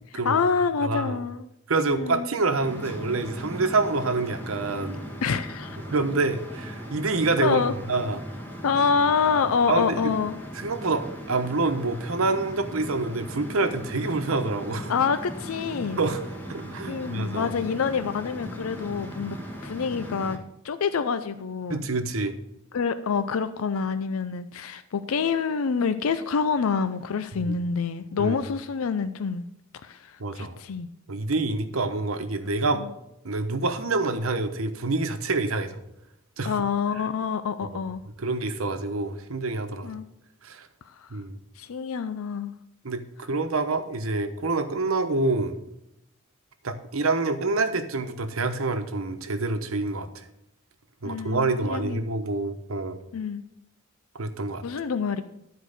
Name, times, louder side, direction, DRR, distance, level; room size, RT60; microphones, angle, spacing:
voice 1, 0.1-1.5 1.9-2.3 5.2-5.8 7.4-7.7 8.6-10.4 14.9-16.0 16.9-21.8 22.7-29.5 29.8-30.9 32.7-32.9 36.4-38.0 39.8-40.1 40.9-41.1 41.6-42.5 51.0-52.1 53.1-53.4 54.6-55.2, left 5 dB, 90° left, 11 dB, 0.5 m, -27 dB
voice 2, 0.8-1.2 1.7-5.0 5.9-8.2 9.7-10.1 10.5-14.9 16.0-16.2 16.5-17.5 21.7-22.3 27.3-27.5 28.2-28.4 30.2-30.6 31.1-32.8 33.2-35.8 36.4-36.6 37.6-37.7 38.2-39.9 40.4-40.7 41.1-41.4 42.8-45.6 46.6-50.2 51.0-53.0 54.2-54.6, right 3 dB, 80° right, 8 dB, 1.0 m, -27 dB
sound 1, 2.6-20.4, equal, 10° left, 1.3 m, -38 dB
12.0 x 4.6 x 6.6 m, 0.82 s
head